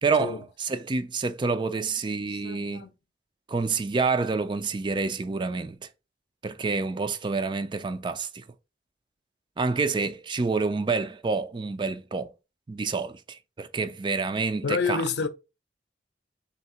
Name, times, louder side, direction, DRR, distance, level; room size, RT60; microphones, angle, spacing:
voice 1, 0.0-2.9 3.5-5.9 6.4-8.4 9.6-12.3 12.7-15.0, right 4 dB, 25° right, 0.3 m, -28 dB
voice 2, 1.7-2.9 14.6-15.3, left 5 dB, 65° left, 0.5 m, -30 dB
3.6 x 2.8 x 4.2 m
head